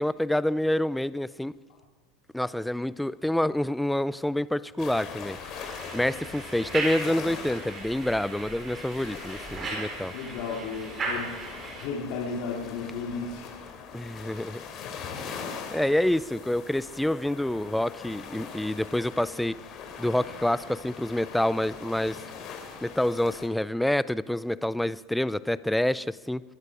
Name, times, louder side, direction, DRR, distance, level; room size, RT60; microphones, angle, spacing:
voice 1, 0.0-1.5 2.3-5.4 5.9-10.1 13.9-14.6 15.7-19.5 20.0-22.2 22.8-26.4, left 1 dB, 5° left, 18 dB, 0.5 m, -27 dB
sound 1, 4.8-23.5, left 6 dB, 45° left, 3.2 m, -42 dB
sound 2, 5.3-11.9, right 3 dB, 30° right, 4.9 m, -37 dB
voice 2, 10.1-11.4 11.8-13.5, left 5 dB, 65° left, -3 dB, 2.8 m, -34 dB
23.0 x 11.0 x 4.9 m, 1.3 s
supercardioid pair, 110°, 0 cm